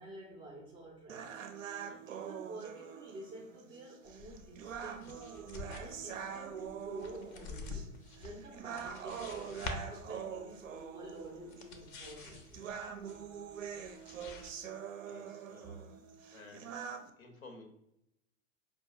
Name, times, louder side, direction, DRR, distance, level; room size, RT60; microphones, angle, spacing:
voice 1, 0.0-1.4 1.9-5.2 5.8-12.6, right 1 dB, 15° right, -3 dB, 0.4 m, -50 dB
sound 1, 1.1-17.1, right 7 dB, 70° right, 0.5 m, -45 dB
sound 2, 4.1-14.5, left 3 dB, 40° left, 0.5 m, -48 dB
voice 2, 15.1-15.8 16.3-16.8 17.2-17.6, left 3 dB, 80° left, 3 dB, 0.9 m, -53 dB
4.6 x 2.2 x 2.6 m, 0.80 s
figure-of-eight pair, 95°, 41 cm